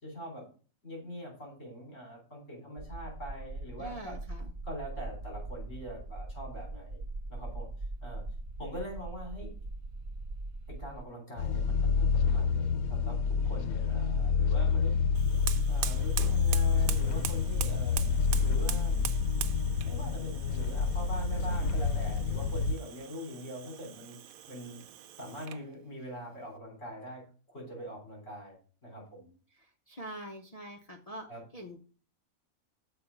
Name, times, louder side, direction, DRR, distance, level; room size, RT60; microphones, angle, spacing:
voice 1, 0.0-0.5 0.8-4.2 4.6-7.0 7.3-7.7 8.0-8.2 8.6-9.5 10.7-15.0 15.7-19.1 19.8-24.2 24.5-24.8 25.2-27.2 27.5-28.6 28.8-29.3 31.3-31.4, equal, 60° left, 0 dB, 4.3 m, -43 dB
sound 1, 2.8-11.0, right 2 dB, 45° right, 0.7 m, -41 dB
voice 2, 3.8-4.5 29.5-31.8, equal, 35° left, 1 dB, 0.7 m, -44 dB
sound 2, 11.4-22.8, left 5 dB, 85° left, 1.1 m, -28 dB
Fire, 15.1-25.7, right 10 dB, 85° right, 1.1 m, -42 dB
6.8 x 4.9 x 6.9 m, 0.39 s
omnidirectional pair, 1.5 m